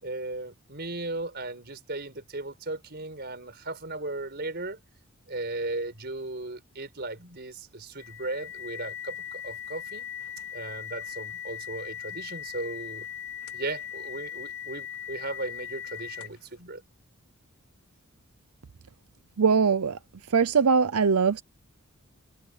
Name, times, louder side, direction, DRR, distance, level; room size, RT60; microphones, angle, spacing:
voice 1, 0.0-4.8 5.3-10.1 10.5-13.1 13.5-16.8, right 2 dB, 50° right, 4.8 m, -36 dB
sound 1, 8.0-16.5, left 9 dB, 85° left, 4.4 m, -39 dB
voice 2, 19.4-20.0 20.3-21.4, right 5 dB, 90° right, 0.7 m, -21 dB
head